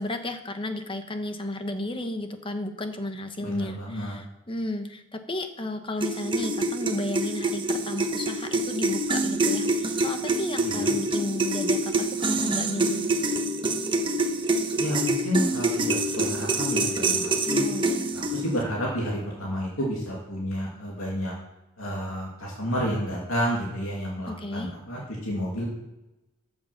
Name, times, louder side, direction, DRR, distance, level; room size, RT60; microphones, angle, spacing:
voice 1, 0.0-13.1 17.4-18.1 24.3-24.8, left 1 dB, 25° left, 7 dB, 1.1 m, -33 dB
voice 2, 3.4-4.2 10.6-10.9 14.8-17.6 18.1-21.3 21.8-25.7, equal, 80° left, -4 dB, 2.8 m, -30 dB
sound 1, 6.0-18.6, right 2 dB, 25° right, 1.2 m, -26 dB
14.0 x 7.1 x 5.8 m, 0.97 s
head